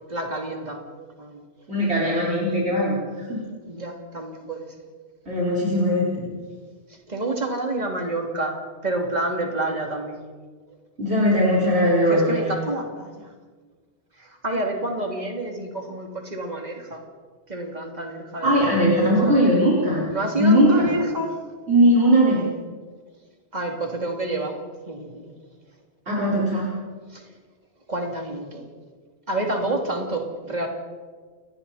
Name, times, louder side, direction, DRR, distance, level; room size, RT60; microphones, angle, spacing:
voice 1, 0.1-1.4 3.7-4.7 7.1-8.5 8.8-10.2 12.1-13.3 14.2-17.0 17.5-19.3 20.1-21.4 23.5-24.6 24.9-25.3 27.1-27.2 27.9-28.6 29.3-30.7, right 2 dB, 40° right, 1 dB, 3.0 m, -28 dB
voice 2, 1.7-3.0 3.3-3.4 5.3-6.3 11.0-12.3 18.4-20.1 20.4-20.9 21.7-22.5 26.1-26.7, equal, 75° right, -6 dB, 5.2 m, -19 dB
29.5 x 21.0 x 4.3 m, 1.5 s
omnidirectional pair, 1.1 m